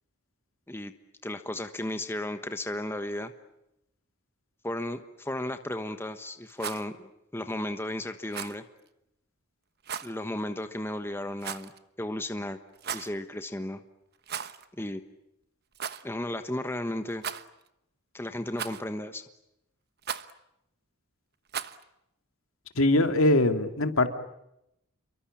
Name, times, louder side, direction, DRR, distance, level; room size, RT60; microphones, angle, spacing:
voice 1, 1.2-3.3 4.6-8.6 10.0-11.7 12.0-12.6 12.9-13.8 14.8-15.0 16.0-17.2 18.1-19.2, left 1 dB, 10° left, 8 dB, 1.2 m, -34 dB
Rattle, 6.5-6.9 8.3-8.6 9.8-10.1 11.4-11.8 12.7-13.1 14.2-14.7 14.9-15.0 15.7-16.0 17.2-17.7 18.6-19.0 20.0-20.3 21.5-21.8, right 7 dB, 45° right, 1.2 m, -36 dB
voice 2, 22.8-24.1, left 2 dB, 70° left, 7 dB, 2.5 m, -22 dB
29.0 x 23.5 x 8.8 m, 0.82 s
head